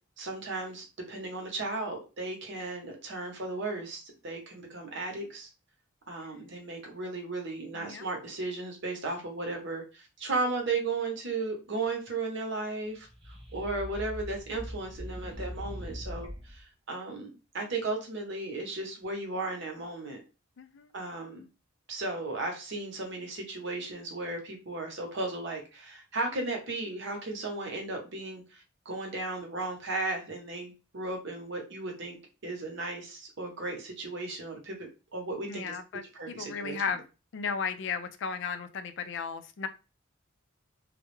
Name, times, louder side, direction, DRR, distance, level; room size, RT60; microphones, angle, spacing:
voice 1, 0.2-5.5 6.1-13.1 13.5-17.3 17.5-20.2 20.9-21.4 21.9-32.2 32.4-34.8 35.1-35.8 36.1-36.8, right 3 dB, 60° right, 2 dB, 0.8 m, -35 dB
voice 2, 7.7-8.0 20.6-20.9 35.5-37.0 37.3-39.7, left 6 dB, 60° left, 9 dB, 0.4 m, -35 dB
sound 1, 12.9-16.6, equal, 25° right, 0.6 m, -41 dB
2.2 x 2.0 x 3.0 m, 0.30 s
head